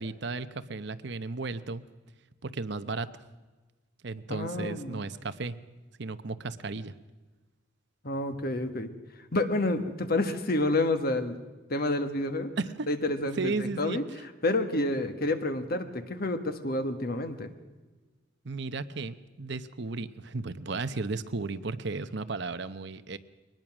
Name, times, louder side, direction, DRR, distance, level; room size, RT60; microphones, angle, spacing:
voice 1, 0.0-1.8 2.4-3.1 4.0-5.6 6.0-6.9 12.6-12.9 13.4-14.0 18.4-23.2, right 3 dB, 60° right, 12 dB, 0.8 m, -34 dB
voice 2, 4.3-5.1 8.0-8.9 9.3-11.4 11.7-12.5 12.9-14.0 14.4-17.5, left 2 dB, 50° left, 8 dB, 1.5 m, -29 dB
22.5 x 19.5 x 6.2 m, 1.2 s
head